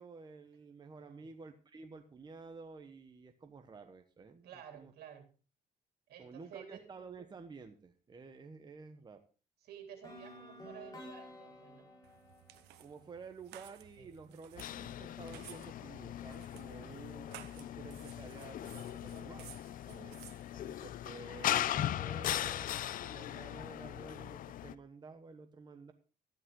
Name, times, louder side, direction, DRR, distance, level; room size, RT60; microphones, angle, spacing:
voice 1, 0.0-4.9 6.2-9.2 12.8-19.5 20.5-25.9, right 4 dB, 25° right, 6 dB, 1.1 m, -51 dB
voice 2, 1.0-1.3 4.4-5.3 6.1-6.9 9.6-11.9 14.0-14.1 16.7-17.0 19.8-20.2, right 8 dB, 75° right, 5 dB, 3.3 m, -53 dB
sound 1, 10.0-14.0, left 1 dB, 25° left, 4.6 m, -53 dB
sound 2, 12.0-21.2, right 14 dB, 90° right, 0.8 m, -57 dB
sound 3, 14.6-24.7, left 12 dB, 60° left, 0.5 m, -39 dB
12.5 x 10.5 x 3.8 m, 0.35 s
cardioid pair, 125°, 17 cm